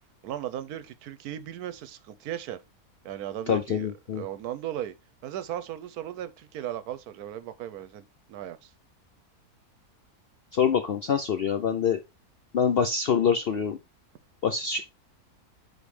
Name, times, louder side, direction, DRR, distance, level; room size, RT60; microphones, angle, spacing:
voice 1, 0.2-2.6 3.0-4.9 5.2-8.7, right 11 dB, 75° right, 1.1 m, -37 dB
voice 2, 3.5-4.2 10.5-12.0 12.5-13.8 14.4-14.8, left 7 dB, 65° left, 0.5 m, -25 dB
5.2 x 4.1 x 4.7 m
omnidirectional pair, 1.7 m